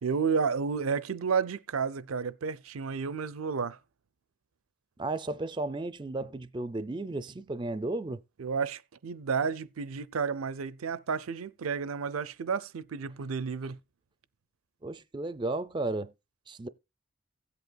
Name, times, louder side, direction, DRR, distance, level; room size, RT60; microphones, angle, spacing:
voice 1, 0.0-3.8 8.4-13.8, right 5 dB, 90° right, 0.5 m, -31 dB
voice 2, 5.0-8.2 14.8-16.1 16.5-16.7, right 2 dB, 20° right, 0.4 m, -34 dB
16.5 x 8.1 x 2.3 m
head